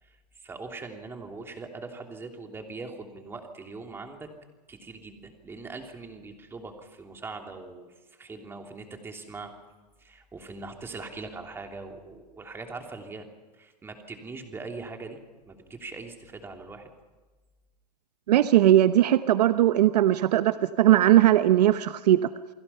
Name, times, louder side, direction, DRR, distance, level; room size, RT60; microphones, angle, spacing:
voice 1, 0.0-4.3 4.7-9.5 10.0-13.3 13.6-15.2 15.4-16.9, right 3 dB, 10° right, 3 dB, 3.0 m, -41 dB
voice 2, 18.3-22.2, right 13 dB, 75° right, 11 dB, 1.1 m, -19 dB
29.5 x 21.0 x 5.7 m, 1.3 s
supercardioid pair, 150°, 21 cm